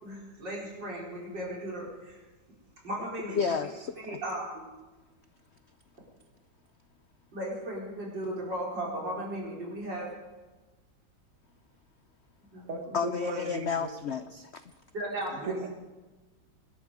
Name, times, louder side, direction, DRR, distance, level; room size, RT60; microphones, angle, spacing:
voice 1, 0.0-2.2 2.8-3.4 4.0-4.6 7.3-10.1 12.5-13.0 14.9-15.5, right 1 dB, 75° right, -4 dB, 5.3 m, -36 dB
voice 2, 3.2-4.2 12.9-14.6, left 6 dB, 80° left, 11 dB, 0.6 m, -32 dB
voice 3, 12.7-13.9 15.3-15.7, right 2 dB, 45° right, 4 dB, 1.7 m, -36 dB
23.5 x 12.5 x 5.0 m, 1.2 s
omnidirectional pair, 2.0 m